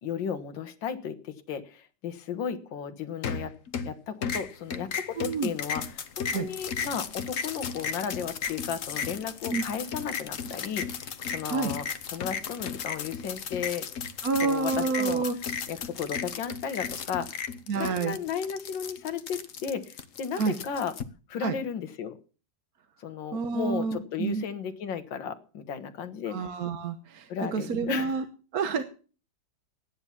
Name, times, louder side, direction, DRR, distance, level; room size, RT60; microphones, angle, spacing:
voice 1, 0.0-3.5 3.8-11.9 12.1-13.9 14.4-15.3 15.7-17.4 17.7-20.9 21.3-22.2 23.0-26.5 27.3-28.2 28.8-28.9, left 7 dB, 75° left, 10 dB, 1.9 m, -34 dB
sound 1, 3.2-3.9 4.2-21.0, left 6 dB, 50° left, 1.2 m, -35 dB
voice 2, 5.2-5.5 6.3-6.5 9.5-9.6 11.5-11.7 14.2-15.4 17.7-18.2 20.3-20.6 21.4-21.6 23.3-24.4 26.3-28.2 28.5-28.8, right 4 dB, 55° right, 9 dB, 1.5 m, -28 dB
13.0 x 9.7 x 7.1 m, 0.38 s
omnidirectional pair, 2.1 m